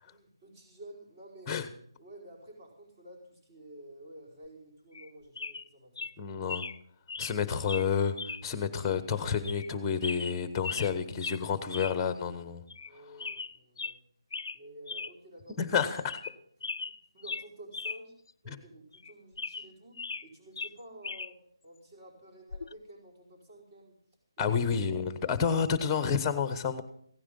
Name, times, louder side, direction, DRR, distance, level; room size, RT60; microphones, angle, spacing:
voice 1, 0.0-1.6 2.0-6.3 12.9-14.0 14.5-15.7 16.8-18.1 18.4-24.0 24.4-24.6 25.0-25.3, right 1 dB, 35° right, -3 dB, 4.8 m, -51 dB
sound 1, 4.9-5.1 5.4-5.7 6.0-6.1 6.5-6.8 7.1-7.4 7.7-7.9 8.2-8.4 8.8-8.9 9.4-9.7 10.0-10.9 11.2-11.4 11.7-12.0 12.3-12.4 12.7-12.9 13.2-14.0 14.3-14.6 14.9-15.1 15.5-15.6 16.0-16.4 16.6-18.0 18.3-18.4 18.9-20.3 20.6-21.3 22.5-22.7, left 4 dB, 60° left, 0.5 m, -38 dB
voice 2, 6.2-6.7 7.2-12.6 15.6-16.2 18.5-18.6 24.4-26.8, left 6 dB, 15° left, 12 dB, 1.0 m, -30 dB
16.5 x 10.0 x 5.4 m, 0.67 s
figure-of-eight pair, 165°, 3 cm